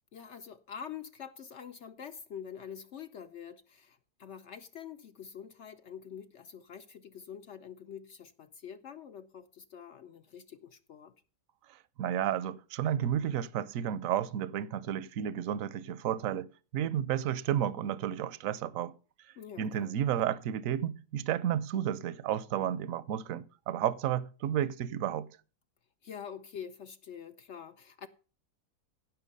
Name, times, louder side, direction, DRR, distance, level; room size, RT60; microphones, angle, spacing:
voice 1, 0.1-11.1 19.4-19.9 26.0-28.1, left 8 dB, 60° left, 0.8 m, -46 dB
voice 2, 12.0-16.5 16.7-18.9 19.6-25.3, right 10 dB, 65° right, 1.0 m, -32 dB
16.5 x 6.1 x 5.3 m
omnidirectional pair, 1.7 m